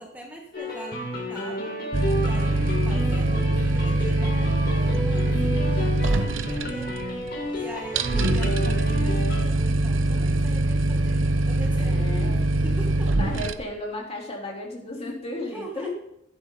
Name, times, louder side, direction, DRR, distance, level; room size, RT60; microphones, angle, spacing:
voice 1, 0.0-1.8 2.1-6.9 7.5-13.4 15.4-15.9, right 1 dB, 10° right, -1 dB, 1.6 m, -42 dB
sound 1, 0.5-9.4, left 1 dB, 55° left, 4.1 m, -32 dB
sound 2, 1.9-13.5, right 2 dB, 80° right, 0.7 m, -23 dB
voice 2, 11.8-12.4 13.2-15.9, left 1 dB, 30° left, -2 dB, 3.3 m, -34 dB
14.0 x 11.5 x 3.9 m, 0.81 s
head